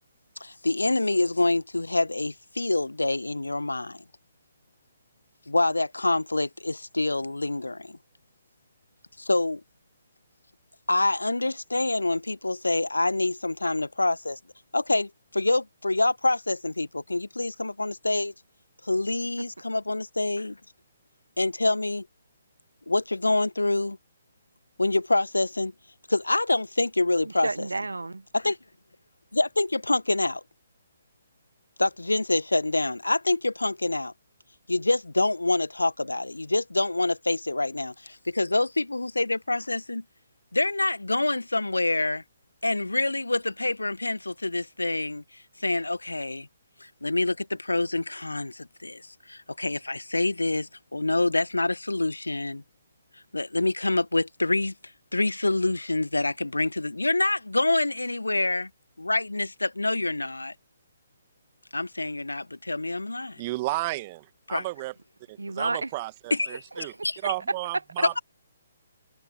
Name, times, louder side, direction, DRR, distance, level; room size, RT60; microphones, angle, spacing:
voice 1, 0.4-4.0 5.5-8.0 9.2-9.6 10.9-14.4 14.7-18.3 18.8-20.6 21.4-22.1 22.9-24.0 24.8-25.7 26.1-27.5 28.3-28.6 29.3-30.4 31.8-34.1 34.7-40.0 40.5-42.2 42.6-45.2 45.6-46.5 46.8-49.0 49.3-52.6 53.3-54.7 55.1-58.7 59.0-60.5 61.7-63.4 64.5-64.6 66.3-66.6 67.0-67.2, left 2 dB, 80° left, 1.4 m, -26 dB
voice 2, 27.3-28.2 65.4-65.9 66.9-67.1, right 3 dB, 75° right, 1.2 m, -31 dB
voice 3, 63.4-64.9 65.3-66.9 67.2-68.2, right 19 dB, 30° right, 1.8 m, -33 dB
figure-of-eight pair, 135°, 0 cm